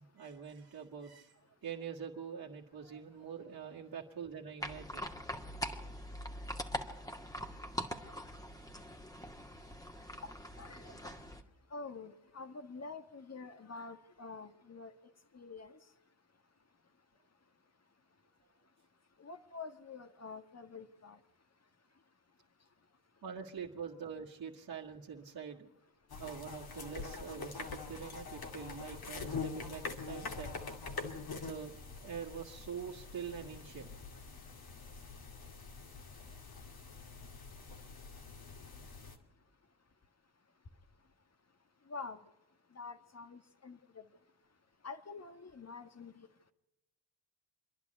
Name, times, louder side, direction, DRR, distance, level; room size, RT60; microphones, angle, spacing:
voice 1, 0.0-1.3 1.6-5.1 23.2-25.7 26.2-30.6 31.3-33.9, right 7 dB, 50° right, -4 dB, 2.1 m, -45 dB
sound 1, 4.6-11.4, equal, 10° left, 2.1 m, -43 dB
voice 2, 10.2-11.1 11.7-14.9 15.3-15.8 19.2-21.2 41.9-42.2 42.7-44.0 44.8-46.3, left 4 dB, 35° left, 10 dB, 1.7 m, -47 dB
sound 2, 26.1-39.2, left 4 dB, 50° left, 2.5 m, -45 dB
26.0 x 11.0 x 9.4 m, 1.0 s
supercardioid pair, 50°, 47 cm